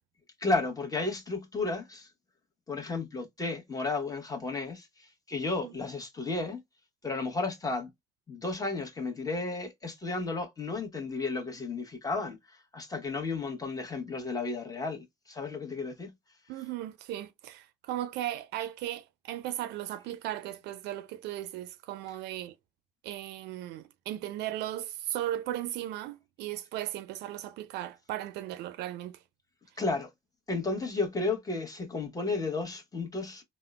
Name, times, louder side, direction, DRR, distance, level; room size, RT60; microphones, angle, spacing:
voice 1, 0.4-2.1 2.7-6.6 7.0-7.9 8.3-12.4 12.7-16.1 29.8-30.1 30.5-33.4, left 3 dB, 20° left, 0.9 m, -33 dB
voice 2, 16.5-22.6 23.0-29.2, right 13 dB, 80° right, 0.4 m, -36 dB
3.5 x 2.0 x 2.2 m
cardioid pair, 110°, 17 cm